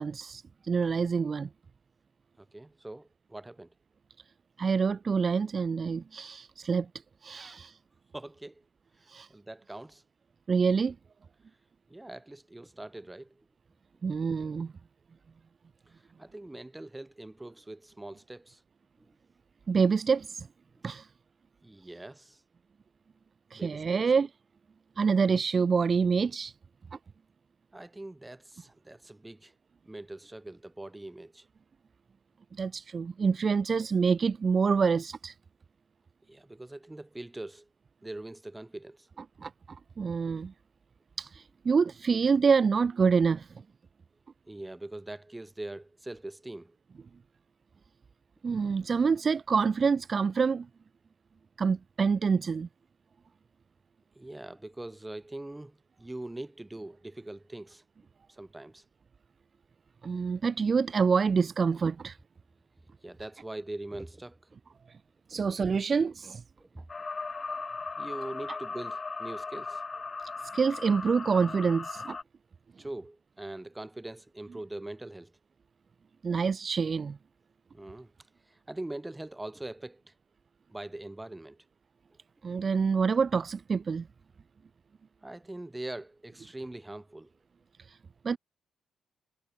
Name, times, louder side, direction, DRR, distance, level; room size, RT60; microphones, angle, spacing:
voice 1, 0.0-1.5 4.6-6.9 7.2-7.8 9.1-9.3 10.5-10.9 14.0-14.7 19.7-20.5 20.8-21.1 23.5-24.3 25.0-26.5 32.6-35.3 39.4-39.5 40.0-40.5 41.2-43.5 48.4-50.7 51.6-52.7 60.0-62.2 65.3-66.4 70.5-72.2 76.2-77.2 82.4-84.1 87.9-88.0 88.2-88.4, right 5 dB, 40° right, 0.6 m, -26 dB
voice 2, 2.4-3.7 7.3-7.6 8.1-8.6 9.3-10.0 11.9-13.5 16.2-18.6 19.0-19.1 20.8-20.9 21.6-22.4 23.6-24.0 27.7-29.5 29.9-31.5 36.3-37.7 38.0-39.1 44.5-46.8 54.2-57.8 58.3-58.8 63.0-64.4 65.3-65.4 66.6-66.8 68.0-69.8 72.8-75.3 77.7-78.1 78.5-80.1 80.7-81.6 85.2-87.3, right 1 dB, 10° right, 5.4 m, -42 dB
sound 1, 66.9-72.2, left 4 dB, 30° left, 0.8 m, -38 dB
cardioid pair, 90°, 0 cm